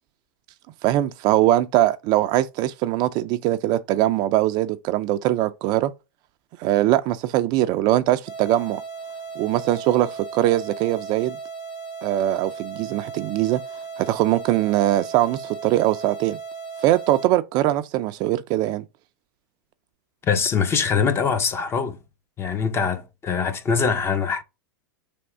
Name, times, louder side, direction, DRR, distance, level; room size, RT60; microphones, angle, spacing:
voice 1, 0.8-5.9 6.6-8.8 9.4-11.4 12.0-13.6 14.0-16.4 16.8-18.8, right 14 dB, 40° right, 0.4 m, -21 dB
sound 1, 8.3-17.3, right 5 dB, 90° left, 2.0 m, -36 dB
voice 2, 20.2-22.0 22.4-24.4, left 6 dB, 20° left, 0.6 m, -23 dB
3.5 x 3.1 x 4.2 m
hypercardioid pair, 120°, 12 cm